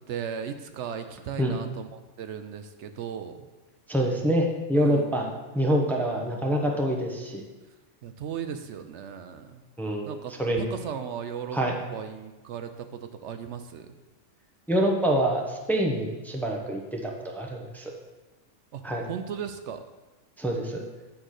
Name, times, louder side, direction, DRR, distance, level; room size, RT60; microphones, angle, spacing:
voice 1, 0.0-3.5 4.8-5.1 8.0-9.6 10.0-11.6 11.9-13.9 18.7-18.8 19.1-19.8, right 8 dB, 70° right, 8 dB, 0.8 m, -36 dB
voice 2, 3.9-5.3 5.5-7.4 9.8-10.1 10.4-10.7 11.5-11.7 14.7-17.9 18.8-19.0 20.4-20.8, right 1 dB, ahead, 1 dB, 0.7 m, -26 dB
8.9 x 3.8 x 6.4 m, 1.2 s
omnidirectional pair, 1.3 m